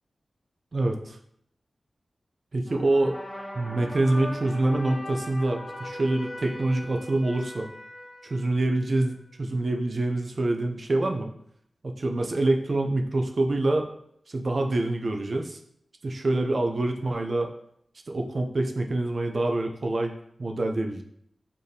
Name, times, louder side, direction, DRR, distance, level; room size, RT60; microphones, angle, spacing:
voice 1, 0.7-1.2 2.5-3.2 3.5-7.7 8.2-11.3 11.8-13.9 14.3-15.6 16.0-17.5 18.1-20.1 20.4-21.0, right 2 dB, 50° right, 4 dB, 0.4 m, -26 dB
sound 1, 2.7-9.0, left 1 dB, 20° left, 0.7 m, -40 dB
4.0 x 2.7 x 3.3 m, 0.69 s
wide cardioid pair, 105°, 0 cm